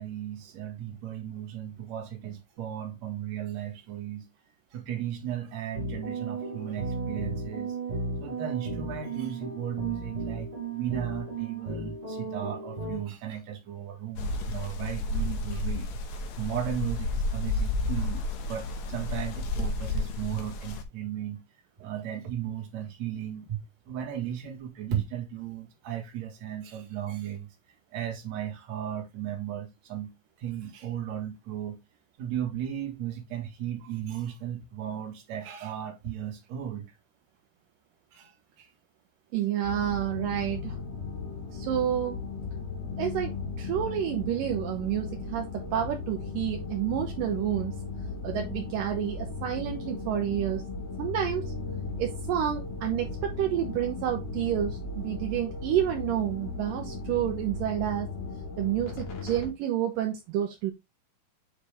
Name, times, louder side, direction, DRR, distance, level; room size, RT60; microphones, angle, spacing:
voice 1, 0.0-4.3 4.7-7.7 8.2-10.5 10.7-15.9 16.4-18.2 18.5-21.4 21.8-23.6 23.9-27.5 27.9-30.1 30.4-31.8 32.2-36.9 38.1-38.3 38.6-38.7, right 10 dB, 55° right, 2.7 m, -35 dB
sound 1, 5.7-13.0, right 3 dB, 25° right, 0.8 m, -35 dB
sound 2, 14.2-20.8, left 2 dB, 65° left, 2.0 m, -31 dB
voice 2, 39.3-40.8 41.5-42.2 43.0-43.3 43.6-47.7 48.2-50.6 51.0-51.5 52.0-58.1 58.6-60.7, right 11 dB, 75° right, 2.5 m, -29 dB
sound 3, 39.6-59.5, left 4 dB, 90° left, 4.2 m, -36 dB
8.1 x 4.6 x 3.5 m
omnidirectional pair, 4.1 m